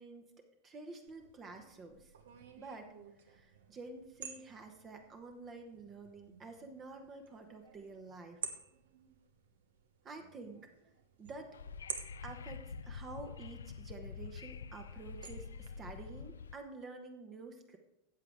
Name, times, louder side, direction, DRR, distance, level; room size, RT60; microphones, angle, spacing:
voice 1, 0.0-2.1 2.6-2.9 3.2-8.4 10.0-10.7 11.2-11.6 12.2-17.8, right 3 dB, 25° right, 5 dB, 1.1 m, -49 dB
sound 1, 1.1-15.7, right 7 dB, 60° right, 1.1 m, -52 dB
Wind / Subway metro underground, 11.5-16.5, left 6 dB, 70° left, 0.4 m, -47 dB
13.5 x 8.3 x 3.5 m, 0.87 s
figure-of-eight pair, 90°, 0 cm